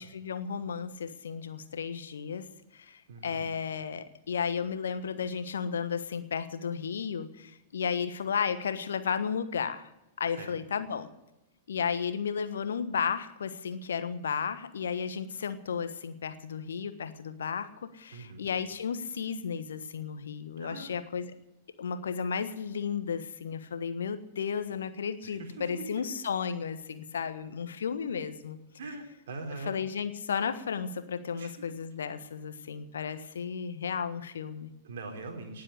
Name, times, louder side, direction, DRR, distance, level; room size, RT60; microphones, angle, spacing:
voice 1, 0.0-9.9 10.2-11.1 11.7-21.3 21.8-28.6 29.7-34.7, left 6 dB, 65° left, 11 dB, 1.3 m, -33 dB
voice 2, 3.1-3.5 10.4-10.6 18.1-18.5 20.6-20.9 25.2-25.8 28.8-29.8 31.4-31.5 34.8-35.6, right 3 dB, 60° right, 3 dB, 3.9 m, -42 dB
19.0 x 7.7 x 9.9 m, 0.90 s
figure-of-eight pair, 100°, 0 cm